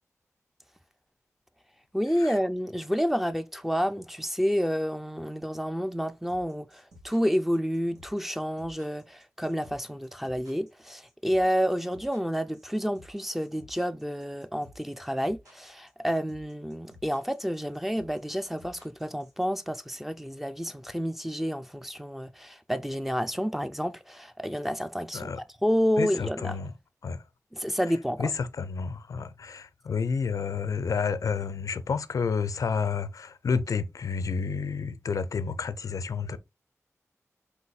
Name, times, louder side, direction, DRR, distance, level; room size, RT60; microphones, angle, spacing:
voice 1, 1.9-25.3 25.6-26.6 27.5-28.3, equal, 5° right, 0.4 m, -29 dB
sound 1, 6.3-19.4, left 1 dB, 85° right, 1.5 m, -54 dB
voice 2, 26.0-26.7 27.0-27.2 28.2-36.4, left 5 dB, 80° left, 0.4 m, -30 dB
4.5 x 4.0 x 2.3 m
wide cardioid pair, 60°, 6 cm